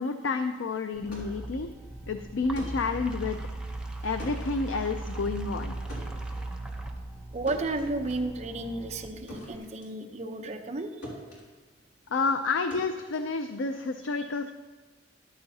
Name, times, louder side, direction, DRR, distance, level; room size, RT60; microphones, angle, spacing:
voice 1, 0.0-1.7 2.1-3.4 4.0-5.7 12.1-14.5, left 4 dB, 85° left, 8 dB, 0.5 m, -30 dB
sound 1, 0.9-9.6, right 2 dB, 5° right, 0.8 m, -38 dB
sound 2, 1.1-10.8 11.0-14.0, equal, 65° left, 3.5 m, -47 dB
voice 2, 7.3-10.9, right 2 dB, 35° right, 4 dB, 0.7 m, -32 dB
13.5 x 11.0 x 2.8 m, 1.4 s
head